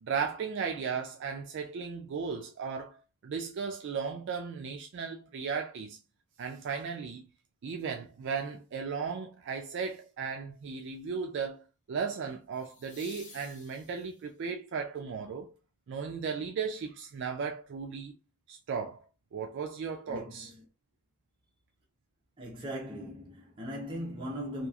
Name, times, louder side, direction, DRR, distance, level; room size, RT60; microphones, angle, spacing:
voice 1, 0.0-6.0 6.4-7.2 7.6-15.5 15.9-18.1 18.5-19.0 19.3-20.5, right 6 dB, 55° right, 0.3 m, -36 dB
sound 1, 9.5-9.8 12.5-14.4 17.3-17.4, left 4 dB, 35° left, 0.6 m, -53 dB
voice 2, 20.1-20.6 22.4-24.7, equal, 20° right, 0.6 m, -39 dB
2.9 x 2.3 x 2.3 m
head